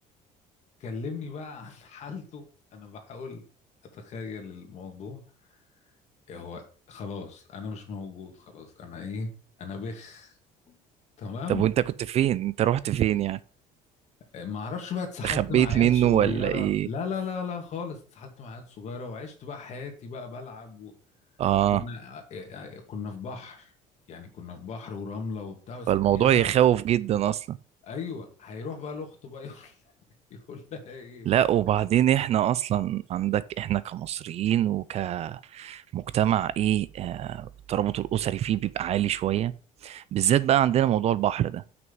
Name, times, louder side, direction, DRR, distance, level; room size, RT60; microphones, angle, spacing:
voice 1, 0.8-2.5 2.7-3.4 3.9-5.2 6.3-9.3 9.6-10.4 10.7-10.8 11.2-11.7 14.3-20.9 21.7-23.7 24.1-26.5 27.8-29.8 30.3-31.4, left 5 dB, 50° left, 2.4 m, -37 dB
voice 2, 12.1-13.4 15.2-16.9 21.4-21.8 25.9-27.6 31.3-39.5 39.8-41.6, right 11 dB, 45° right, 0.4 m, -24 dB
6.2 x 6.0 x 7.0 m
cardioid pair, 135°, 15 cm